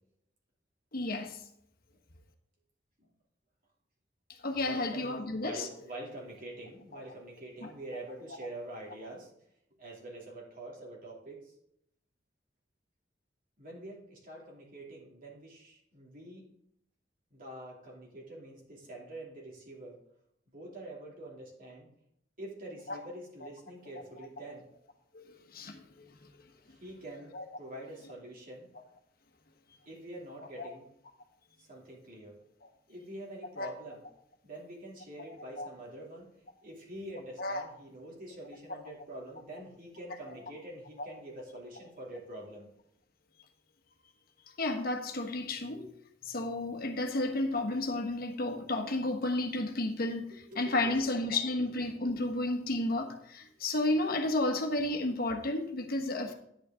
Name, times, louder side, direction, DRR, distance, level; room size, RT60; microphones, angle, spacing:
voice 1, 0.9-1.4 4.4-5.7 6.9-7.0 7.6-7.7 22.9-23.0 25.1-26.3 27.3-27.4 30.6-30.7 32.6-32.7 33.6-33.7 35.2-35.3 35.6-35.7 37.4-37.7 38.7-38.8 40.3-40.4 41.0-41.1 44.6-45.9 46.2-56.3, left 2 dB, 55° left, 1.3 m, -32 dB
voice 2, 4.6-9.3 9.8-11.4 13.6-16.5 17.3-20.0 20.5-21.9 22.4-24.7 26.7-28.7 29.9-30.9 31.6-32.4 32.9-34.0 34.4-36.3 36.6-42.7 50.3-51.0 51.4-51.7, right 1 dB, 50° right, 2.8 m, -46 dB
10.0 x 8.6 x 3.7 m
head